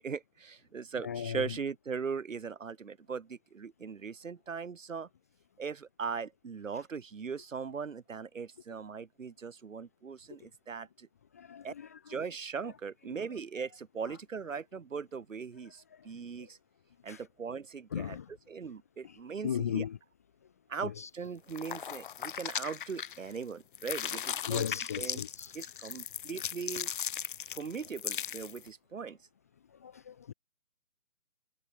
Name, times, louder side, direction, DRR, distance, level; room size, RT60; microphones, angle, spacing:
voice 1, 0.0-5.1 5.6-11.1 11.6-11.7 12.1-16.6 17.0-18.2 18.5-19.8 20.7-24.7 25.0-25.2 25.5-26.9 27.5-29.2, right 5 dB, 60° right, 3.1 m, -39 dB
voice 2, 1.0-1.6 11.3-12.2 13.1-13.3 14.0-14.2 15.9-16.5 17.1-17.2 17.9-18.3 19.0-19.2 19.4-20.0 20.8-21.1 24.5-25.6 29.7-30.3, left 8 dB, 10° left, 0.7 m, -37 dB
sound 1, 21.5-23.4 23.7-28.7, left 9 dB, 35° left, 2.0 m, -38 dB
figure-of-eight pair, 150°, 44 cm